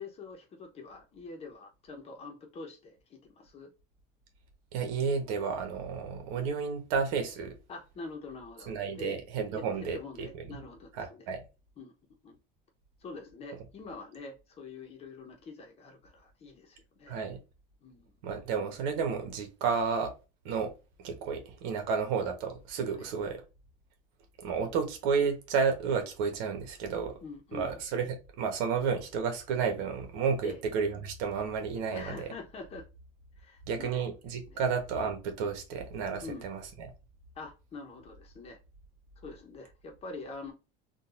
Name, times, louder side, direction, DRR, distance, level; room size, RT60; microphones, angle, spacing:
voice 1, 0.0-3.7 7.7-9.2 9.5-11.3 11.8-11.9 12.2-12.4 13.0-17.2 17.8-18.1 22.9-23.1 27.2-27.7 30.4-30.6 31.9-32.9 33.4-34.1 34.5-34.6 36.2-36.5 37.3-38.6 39.2-40.5, left 3 dB, 30° left, 0.8 m, -45 dB
voice 2, 4.7-7.5 8.7-10.3 11.0-11.4 17.1-17.4 18.2-20.1 20.4-20.7 21.0-23.4 24.4-27.2 27.5-32.3 33.7-36.6, right 5 dB, 85° right, 1.2 m, -31 dB
3.9 x 2.4 x 2.5 m
cardioid pair, 160°, 19 cm